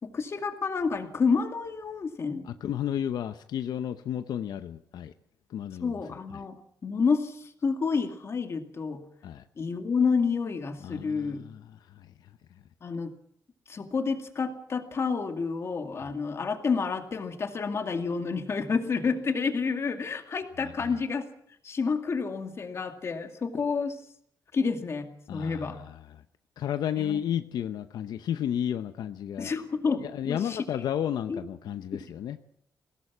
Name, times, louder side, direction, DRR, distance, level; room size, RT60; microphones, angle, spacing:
voice 1, 0.0-2.4 5.8-6.6 6.8-9.0 9.6-11.4 12.8-13.1 13.7-21.2 21.6-24.0 24.5-25.8 27.0-27.2 29.4-30.6 31.3-31.4 31.9-32.0, left 5 dB, 40° left, 6 dB, 2.3 m, -29 dB
voice 2, 2.4-5.1 5.5-6.0 6.3-6.4 9.2-9.4 10.8-12.3 20.6-20.9 25.3-26.2 26.6-29.5 30.0-32.4, left 10 dB, 90° left, 10 dB, 0.8 m, -33 dB
21.0 x 17.0 x 7.3 m, 0.67 s
wide cardioid pair, 140°, 7 cm